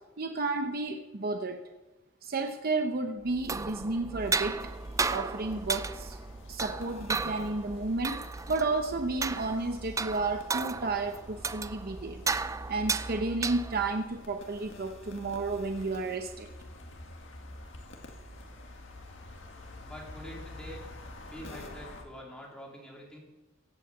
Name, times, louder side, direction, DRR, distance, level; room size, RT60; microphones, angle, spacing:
voice 1, 0.2-1.6 2.2-4.6 5.1-6.2 6.5-8.2 8.5-12.2 12.7-16.5, right 3 dB, 50° right, 6 dB, 0.8 m, -32 dB
sound 1, 3.3-14.0, right 4 dB, 15° right, 0.4 m, -34 dB
sound 2, 4.2-22.0, left 2 dB, 65° left, 2.0 m, -49 dB
voice 2, 19.4-20.9 21.3-23.2, equal, 5° left, -3 dB, 3.7 m, -46 dB
16.5 x 8.2 x 7.1 m, 1.0 s
head